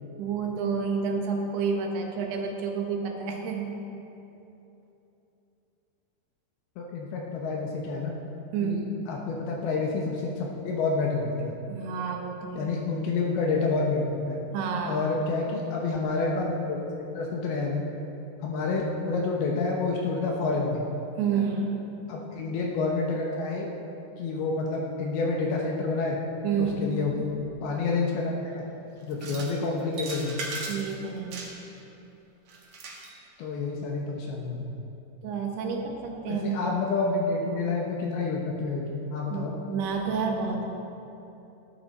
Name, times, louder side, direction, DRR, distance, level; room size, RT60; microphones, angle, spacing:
voice 1, 0.2-3.8 8.5-9.1 11.7-12.7 14.5-15.1 21.2-22.1 26.4-27.0 29.2-29.4 30.7-31.5 35.2-36.6 39.3-40.7, right 5 dB, 75° right, 2 dB, 3.1 m, -30 dB
voice 2, 6.8-8.1 8.6-8.8 9.1-11.6 12.5-14.4 14.9-16.8 17.1-17.8 18.4-20.9 22.1-23.7 24.2-26.2 26.6-27.3 27.6-28.6 29.0-30.4 33.4-34.7 36.3-39.5, left 3 dB, 70° left, -1 dB, 2.8 m, -28 dB
sound 1, 29.1-29.6 29.9-30.9 31.3-31.8 32.5-33.2, right 2 dB, 55° right, 2.1 m, -37 dB
17.5 x 10.5 x 4.2 m, 3.0 s
omnidirectional pair, 5.0 m